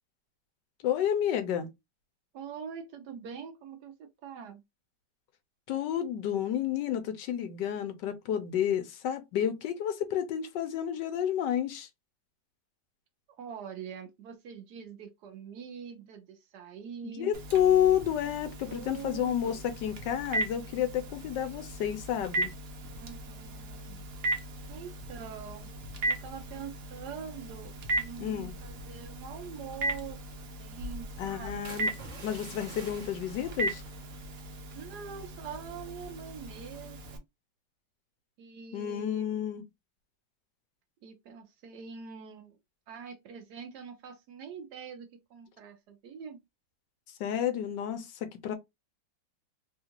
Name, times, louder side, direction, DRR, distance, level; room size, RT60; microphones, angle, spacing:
voice 1, 0.8-1.7 5.7-11.9 17.0-22.5 28.2-28.5 31.2-31.9 32.2-33.8 38.7-39.6 47.2-48.6, left 10 dB, 75° left, 1.3 m, -30 dB
voice 2, 2.3-4.6 13.4-17.3 18.7-19.6 22.9-24.0 24.7-25.7 26.1-31.6 34.8-37.2 38.4-39.3 41.0-42.6 42.9-46.4, right 7 dB, 70° right, 1.1 m, -44 dB
Telephone, 17.3-37.2, right 2 dB, 90° right, 0.5 m, -37 dB
sound 1, 31.6-35.4 35.6-36.0 36.5-36.8, right 4 dB, 50° right, 1.2 m, -50 dB
3.5 x 2.4 x 2.8 m
omnidirectional pair, 2.0 m